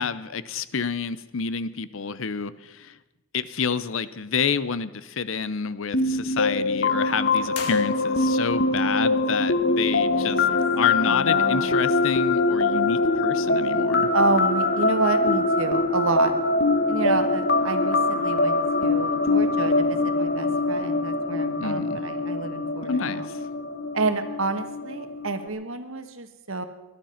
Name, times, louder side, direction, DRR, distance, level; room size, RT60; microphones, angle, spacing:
voice 1, 0.0-3.0 3.3-10.5 10.8-14.1 21.6-22.0 22.8-23.4, left 5 dB, 65° left, 16 dB, 0.7 m, -29 dB
sound 1, 5.9-25.5, left 3 dB, 50° left, 1.2 m, -23 dB
sound 2, 7.5-8.5, left 6 dB, 90° left, 2.1 m, -39 dB
voice 2, 10.1-10.6 11.0-11.8 14.1-16.3 16.9-23.3 23.9-26.6, right 3 dB, 65° right, 9 dB, 1.4 m, -29 dB
20.0 x 12.0 x 5.8 m, 1.0 s
head